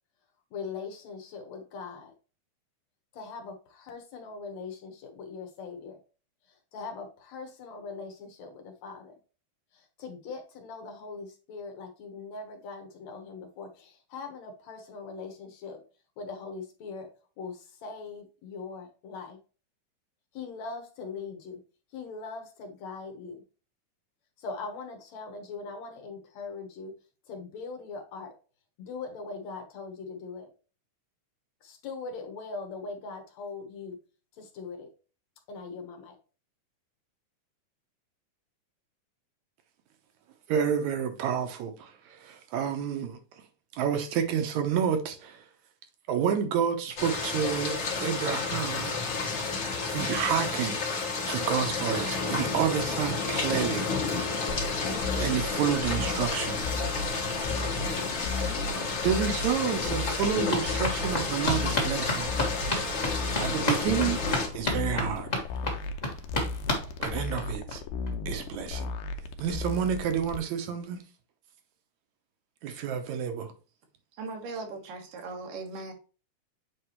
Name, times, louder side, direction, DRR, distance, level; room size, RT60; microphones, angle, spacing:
voice 1, 0.5-2.1 3.1-6.0 6.5-9.1 9.7-15.8 16.2-17.1 17.4-19.4 20.3-21.6 21.9-23.4 24.4-27.0 27.3-28.3 28.8-30.5 31.6-34.0 34.4-34.9 35.5-36.2, left 4 dB, 65° left, 2.3 m, -41 dB
voice 2, 40.5-43.2 43.7-45.4 46.1-48.9 49.9-50.8 51.3-53.9 55.1-56.7 59.0-62.3 63.4-64.2 64.5-65.3 67.0-67.8 68.3-68.9 69.4-71.0 72.6-73.5, right 8 dB, 70° right, 2.2 m, -29 dB
sound 1, 47.0-64.5, left 4 dB, 45° left, 2.0 m, -31 dB
sound 2, 54.5-70.4, left 3 dB, 90° left, 2.3 m, -35 dB
sound 3, 59.3-67.8 68.1-68.2 68.4-68.5 68.8-68.9, left 1 dB, 20° left, 1.2 m, -33 dB
voice 3, 74.1-75.9, right 3 dB, 90° right, 3.0 m, -38 dB
7.9 x 4.6 x 3.0 m
omnidirectional pair, 3.6 m